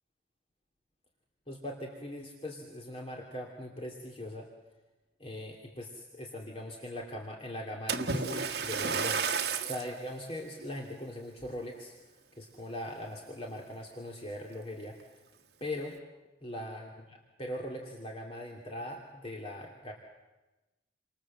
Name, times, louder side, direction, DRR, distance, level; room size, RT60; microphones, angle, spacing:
voice 1, 1.5-4.5 5.2-11.9 12.4-15.2 15.6-16.0 16.4-19.9, left 1 dB, 30° left, 0 dB, 2.8 m, -41 dB
Splash splatter, 7.9-9.9 10.6-10.8 11.4-11.5, right 5 dB, 60° right, 1.6 m, -32 dB
29.5 x 25.5 x 7.6 m, 1.1 s
head